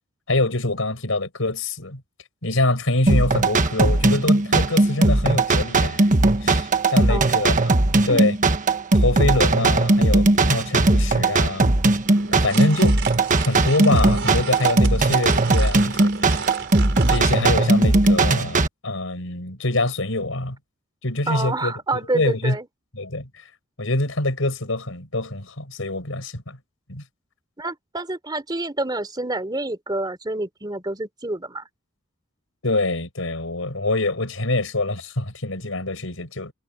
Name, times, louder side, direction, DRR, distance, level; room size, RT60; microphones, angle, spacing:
voice 1, 0.3-2.0 2.4-6.1 6.4-8.4 8.9-11.7 12.3-13.0 13.4-16.4 17.1-20.6 21.0-21.7 22.1-22.6 22.9-23.3 23.8-26.6 26.9-27.0 32.6-36.5, left 2 dB, 80° left, 5.0 m, -25 dB
sound 1, 3.1-18.7, right 2 dB, 40° right, 1.4 m, -18 dB
sound 2, 12.1-17.3, right 6 dB, 65° right, 5.6 m, -33 dB
voice 2, 21.3-22.7 27.6-31.6, right 2 dB, 20° right, 3.4 m, -28 dB
head